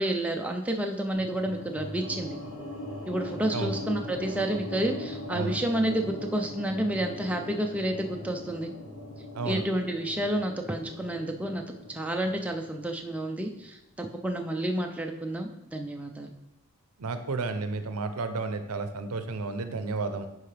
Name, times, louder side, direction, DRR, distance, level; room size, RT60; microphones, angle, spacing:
voice 1, 0.0-2.4 3.1-8.7 9.4-11.6 11.9-16.3, right 1 dB, 5° right, 2 dB, 0.5 m, -30 dB
sound 1, 1.1-13.4, left 1 dB, 90° left, 1.3 m, -40 dB
voice 2, 17.0-20.3, right 3 dB, 90° right, 9 dB, 0.7 m, -32 dB
10.0 x 4.6 x 3.4 m, 0.88 s
head